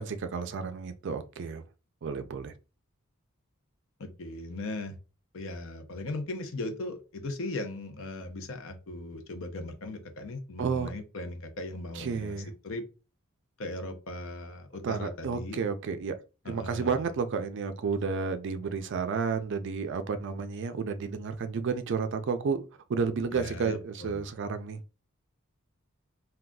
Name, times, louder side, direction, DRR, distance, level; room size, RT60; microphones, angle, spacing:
voice 1, 0.0-1.6 2.0-2.5 10.6-10.9 11.9-12.5 14.8-16.2 16.5-22.6 22.9-24.8, right 5 dB, 60° right, 0.4 m, -31 dB
voice 2, 4.0-5.0 5.3-12.3 12.6-12.8 13.6-15.6 16.4-17.1 23.3-24.2, left 2 dB, 65° left, 0.6 m, -38 dB
3.7 x 2.3 x 2.3 m
head